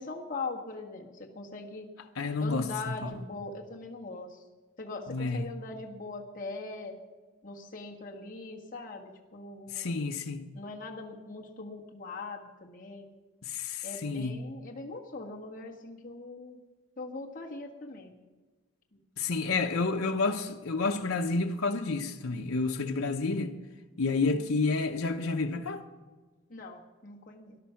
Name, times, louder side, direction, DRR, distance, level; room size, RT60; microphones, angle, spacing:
voice 1, 0.0-1.9 2.4-4.4 4.8-7.0 7.4-10.1 10.5-13.1 13.8-16.6 17.0-18.1 24.2-24.5 26.5-27.6, left 3 dB, 40° left, 1.6 m, -41 dB
voice 2, 2.2-3.1 5.1-5.4 9.7-10.4 13.4-14.3 19.2-23.5 24.0-25.8, left 3 dB, 75° left, 0.9 m, -30 dB
19.5 x 11.5 x 5.8 m
head